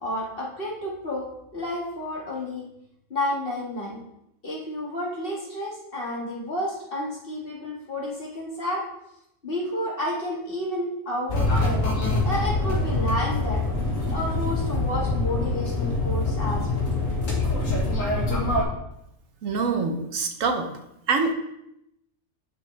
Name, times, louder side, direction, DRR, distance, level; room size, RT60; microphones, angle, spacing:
voice 1, 0.0-2.7 3.1-4.0 4.4-8.9 9.4-11.8 12.2-13.6 14.1-16.7, left 1 dB, 40° left, -3 dB, 2.2 m, -30 dB
sound 1, 11.3-18.6, left 2 dB, 70° left, 2.1 m, -25 dB
voice 2, 19.4-20.7 21.1-21.3, right 4 dB, 70° right, 5 dB, 1.4 m, -25 dB
11.5 x 6.1 x 3.4 m, 0.82 s
omnidirectional pair, 1.4 m